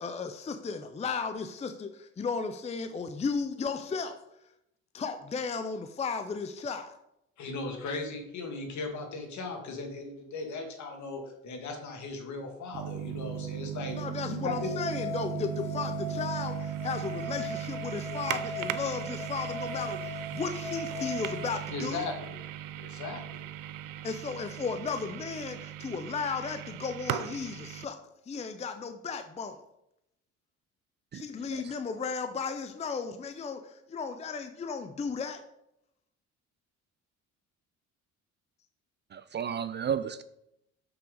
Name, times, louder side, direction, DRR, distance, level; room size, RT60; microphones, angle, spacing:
voice 1, 0.0-4.2 4.9-6.9 14.0-22.1 24.0-28.0 28.3-29.6 31.1-35.4, left 5 dB, 20° left, 8 dB, 0.5 m, -35 dB
voice 2, 7.4-14.0 14.2-14.7 21.7-22.4 22.8-23.5, left 3 dB, 65° left, 3 dB, 1.9 m, -37 dB
sound 1, 12.7-27.8, right 12 dB, 90° right, 0.5 m, -38 dB
sound 2, 14.6-21.5, left 2 dB, 85° left, 2.7 m, -39 dB
voice 3, 39.1-40.2, right 8 dB, 35° right, 12 dB, 0.4 m, -33 dB
6.7 x 5.8 x 3.9 m, 0.80 s
cardioid pair, 105°, 32 cm